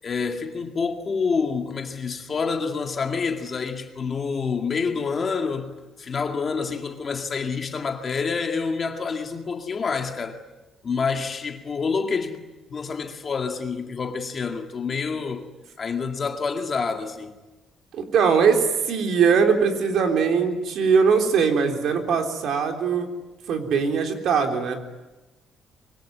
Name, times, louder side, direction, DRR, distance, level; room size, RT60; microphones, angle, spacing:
voice 1, 0.0-10.4 10.8-12.4 12.7-15.5 15.8-17.3, left 5 dB, 30° left, 2.1 m, -27 dB
voice 2, 17.9-23.1 23.5-24.8, right 6 dB, 60° right, 3.7 m, -21 dB
26.0 x 23.5 x 9.4 m
cardioid pair, 175°, 0 cm